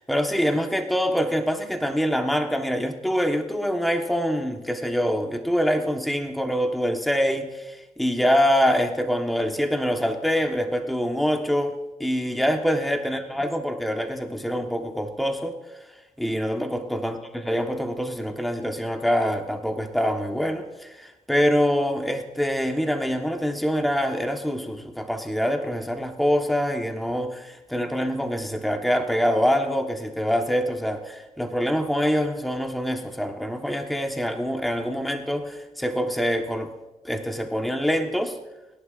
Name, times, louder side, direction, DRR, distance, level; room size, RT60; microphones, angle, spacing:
voice 1, 0.0-11.7 12.0-15.6 16.2-36.7 37.0-38.4, equal, ahead, 4 dB, 1.2 m, -25 dB
21.5 x 11.0 x 2.5 m, 1.1 s
cardioid pair, 65°, 15 cm